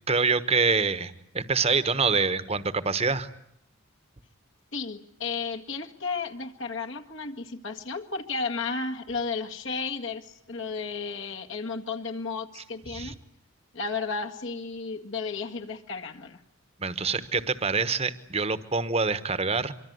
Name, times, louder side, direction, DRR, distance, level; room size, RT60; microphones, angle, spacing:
voice 1, 0.1-3.3 12.6-12.7 12.9-13.1 16.8-19.7, right 4 dB, 30° right, 13 dB, 1.2 m, -26 dB
voice 2, 4.7-13.2 13.7-16.4, left 4 dB, 65° left, 2 dB, 1.9 m, -33 dB
25.0 x 24.0 x 9.5 m, 0.72 s
head